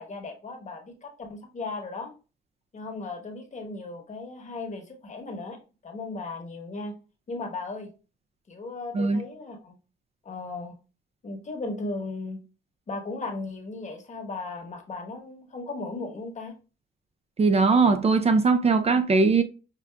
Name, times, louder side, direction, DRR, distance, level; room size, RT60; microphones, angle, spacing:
voice 1, 0.0-2.1 2.7-5.6 5.8-6.9 7.3-7.9 8.5-9.8 10.2-10.7 11.2-12.4 12.9-16.5, left 3 dB, 35° left, 1.0 m, -36 dB
voice 2, 17.4-19.4, right 4 dB, 30° right, 0.4 m, -20 dB
5.7 x 2.5 x 2.2 m
cardioid pair, 90°, 20 cm